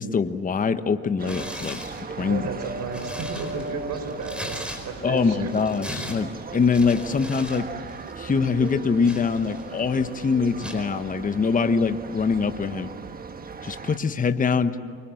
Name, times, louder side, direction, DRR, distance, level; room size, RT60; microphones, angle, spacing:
voice 1, 0.0-1.8 2.2-2.4 5.0-7.7 8.2-12.9 13.6-14.8, left 5 dB, 20° left, 9 dB, 1.2 m, -23 dB
Tearing, 1.2-2.0 2.5-5.2 5.5-7.6 7.9-8.1 8.6-9.8 10.6-10.9, left 1 dB, 5° right, 4.7 m, -38 dB
sound 1, 1.2-14.0, right 4 dB, 25° right, 1.4 m, -37 dB
voice 2, 2.2-5.5, right 4 dB, 50° right, 7 dB, 4.7 m, -33 dB
28.5 x 24.5 x 7.7 m, 2.2 s
supercardioid pair, 105°, 36 cm